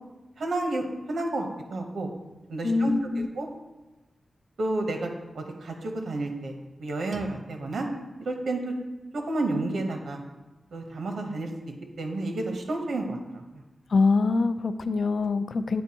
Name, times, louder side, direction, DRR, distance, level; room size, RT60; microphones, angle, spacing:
voice 1, 0.4-2.1 2.5-3.5 4.6-5.1 5.3-6.5 6.8-7.9 8.2-8.7 9.1-10.2 10.7-11.5 12.0-13.6, right 2 dB, 85° right, 3 dB, 0.8 m, -31 dB
voice 2, 2.6-3.3 13.9-15.8, left 4 dB, 65° left, 11 dB, 0.3 m, -24 dB
9.2 x 4.4 x 2.8 m, 1.1 s
wide cardioid pair, 115°, 0 cm